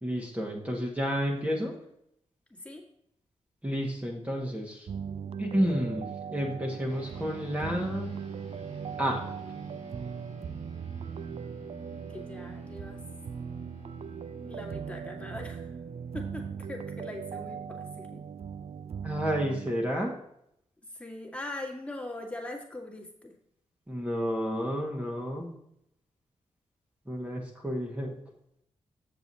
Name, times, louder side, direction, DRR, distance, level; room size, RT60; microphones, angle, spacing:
voice 1, 0.0-1.7 3.6-4.9 5.4-8.2 9.0-9.2 19.0-20.1 23.9-25.5 27.1-28.2, equal, 10° right, -2 dB, 1.4 m, -31 dB
voice 2, 2.5-2.8 11.9-13.0 14.5-15.8 16.1-18.2 20.9-23.3, left 2 dB, 10° left, 0 dB, 1.8 m, -41 dB
sound 1, 4.9-19.7, right 7 dB, 60° right, 0.4 m, -39 dB
sound 2, 6.9-18.6, equal, 75° right, 2.9 m, -50 dB
7.7 x 6.9 x 4.1 m, 0.75 s
wide cardioid pair, 90°, 12 cm